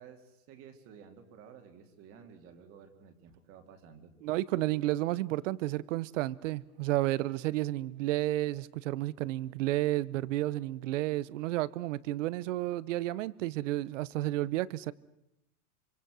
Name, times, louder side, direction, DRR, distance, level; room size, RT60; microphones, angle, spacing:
voice 1, 0.0-4.2, right 7 dB, 30° right, 2.3 m, -53 dB
voice 2, 4.2-14.9, right 16 dB, 55° right, 0.9 m, -31 dB
26.0 x 25.5 x 6.2 m
supercardioid pair, 170°, 45 cm